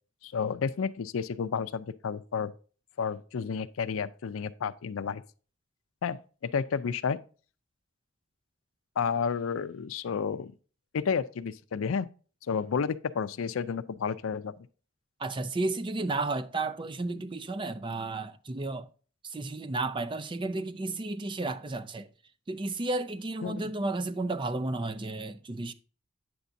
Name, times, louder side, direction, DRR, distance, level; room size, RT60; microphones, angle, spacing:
voice 1, 0.2-2.5 3.0-5.2 6.0-7.2 9.0-10.5 10.9-12.1 12.5-14.5 23.4-23.6, left 6 dB, 85° left, 0.4 m, -31 dB
voice 2, 15.2-18.9 19.2-22.1 22.5-25.7, right 2 dB, 25° right, 0.4 m, -32 dB
9.1 x 6.9 x 2.6 m
head